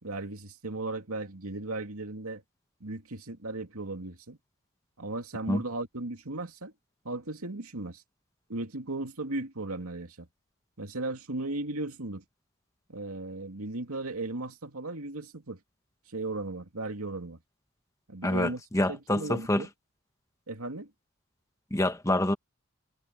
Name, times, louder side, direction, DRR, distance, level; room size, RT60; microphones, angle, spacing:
voice 1, 0.0-2.4 2.8-4.4 5.0-6.7 7.0-8.0 8.5-10.3 10.8-12.2 12.9-15.6 16.1-17.4 18.1-19.7 20.5-20.9, right 2 dB, 80° right, 2.6 m, -36 dB
voice 2, 18.2-19.6 21.7-22.3, left 1 dB, 15° left, 1.1 m, -27 dB
head